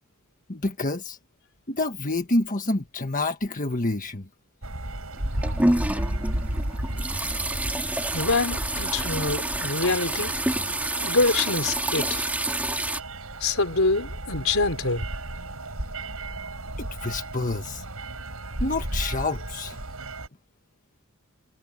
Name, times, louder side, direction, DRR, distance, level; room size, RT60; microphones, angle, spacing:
voice 1, 0.5-1.2 1.7-4.3 16.8-17.8 18.6-19.8, left 2 dB, 40° left, 1.5 m, -28 dB
sound 1, 4.6-20.3, right 1 dB, 90° right, 5.5 m, -34 dB
sound 2, 5.2-13.0, right 1 dB, 5° right, 1.9 m, -28 dB
voice 2, 8.1-10.4 11.0-12.3 13.4-15.0, left 3 dB, 75° left, 4.2 m, -25 dB
head